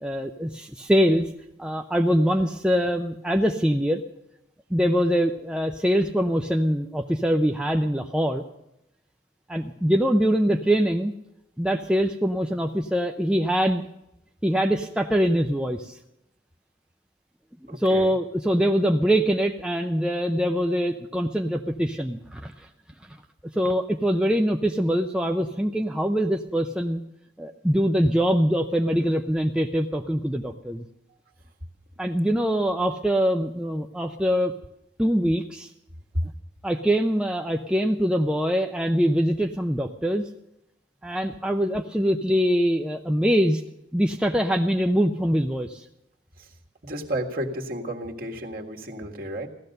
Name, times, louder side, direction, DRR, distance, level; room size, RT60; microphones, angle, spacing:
voice 1, 0.0-1.3 1.6-4.0 4.7-8.4 9.5-11.1 11.6-13.9 14.4-16.0 17.7-22.7 23.5-27.0 27.4-30.8 32.0-34.6 35.0-35.7 36.6-40.3 41.0-43.6 43.9-45.8, equal, 5° right, 4 dB, 0.5 m, -23 dB
voice 2, 17.7-18.1 36.1-36.3 46.4-46.5 46.8-49.5, right 1 dB, 50° right, 2 dB, 1.8 m, -31 dB
16.5 x 13.0 x 6.6 m, 0.86 s
head